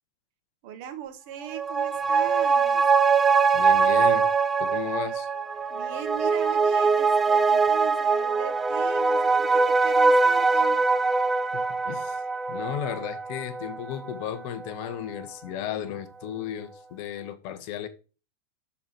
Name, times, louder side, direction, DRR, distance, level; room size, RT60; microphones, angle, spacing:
voice 1, 0.6-2.8 5.7-10.8, right 11 dB, 45° right, 1.1 m, -39 dB
sound 1, 1.4-14.3 14.6-14.7, right 4 dB, 15° right, 0.4 m, -23 dB
voice 2, 3.5-4.3 4.6-5.3 11.5-12.2 12.5-17.9, left 10 dB, 45° left, 0.8 m, -34 dB
6.6 x 4.1 x 4.5 m
figure-of-eight pair, 90°, 0 cm